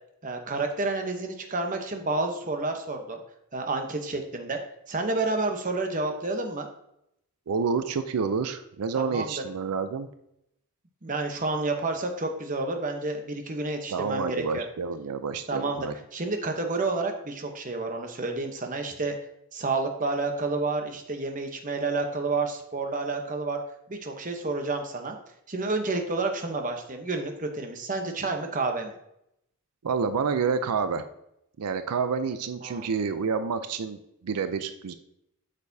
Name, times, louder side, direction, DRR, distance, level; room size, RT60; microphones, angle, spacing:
voice 1, 0.2-3.2 3.5-4.6 4.9-6.7 9.0-9.4 11.0-14.6 15.5-15.9 16.1-19.2 19.5-23.6 23.9-25.2 25.5-28.9 32.6-32.9, right 3 dB, 35° right, 5 dB, 0.8 m, -30 dB
voice 2, 7.5-10.1 13.9-15.9 29.8-31.0 31.6-34.9, right 5 dB, 90° right, 10 dB, 0.5 m, -29 dB
8.2 x 6.6 x 2.7 m, 0.79 s
head